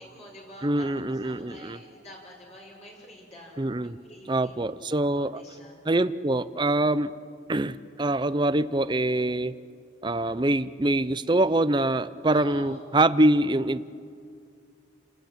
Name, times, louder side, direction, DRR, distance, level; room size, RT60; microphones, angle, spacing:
voice 1, 0.0-4.6 5.1-5.8 12.3-12.9, left 1 dB, 35° left, -2 dB, 6.0 m, -47 dB
voice 2, 0.6-1.8 3.6-4.0 4.3-5.4 5.9-7.1 7.5-9.6 10.0-13.8, right 1 dB, 25° right, 14 dB, 0.6 m, -24 dB
30.0 x 20.5 x 8.9 m, 2.3 s
head